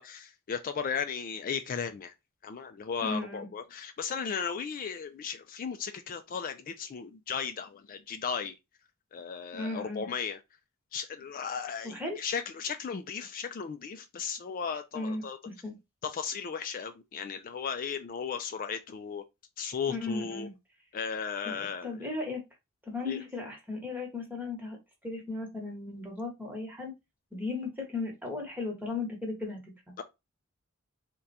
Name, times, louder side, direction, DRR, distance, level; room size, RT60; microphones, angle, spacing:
voice 1, 0.0-2.1 2.4-8.6 9.1-10.4 10.9-15.4 16.0-19.2 19.6-20.5 20.9-21.9 23.1-23.2 30.0-30.1, left 6 dB, 40° left, 0.3 m, -35 dB
voice 2, 3.0-3.5 9.5-10.1 11.8-12.2 14.9-15.7 19.9-20.5 21.4-22.4 22.9-24.8 25.0-26.9 27.3-29.9, left 3 dB, 10° right, 1.1 m, -36 dB
3.7 x 2.2 x 4.0 m
head